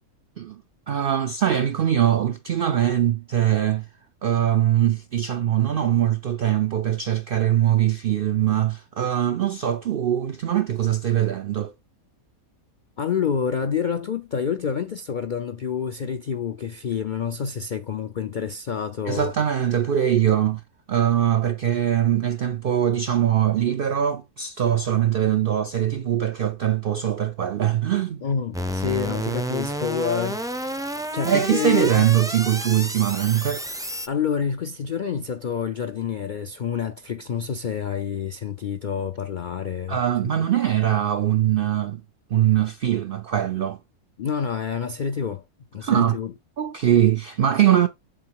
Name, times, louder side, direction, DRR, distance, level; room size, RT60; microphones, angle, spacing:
voice 1, 0.9-3.9 4.2-11.7 19.1-20.6 20.9-28.2 31.2-33.6 39.9-42.0 42.3-43.8 45.8-46.2 46.6-47.9, right 11 dB, 70° right, 0.5 m, -22 dB
voice 2, 13.0-19.3 28.2-30.4 31.1-32.1 34.1-40.0 44.2-45.4 45.7-46.3, left 7 dB, 65° left, 0.4 m, -28 dB
sound 1, 28.5-34.1, equal, 5° right, 0.3 m, -30 dB
7.6 x 3.7 x 4.6 m
omnidirectional pair, 1.5 m